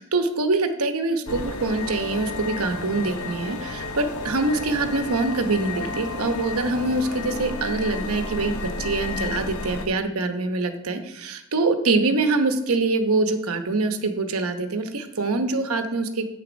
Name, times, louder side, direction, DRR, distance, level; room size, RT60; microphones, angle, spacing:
voice 1, 0.0-16.3, right 3 dB, 85° right, 7 dB, 1.0 m, -24 dB
sound 1, 1.3-9.9, left 3 dB, 80° left, 1.0 m, -32 dB
7.9 x 6.9 x 5.1 m, 0.85 s
head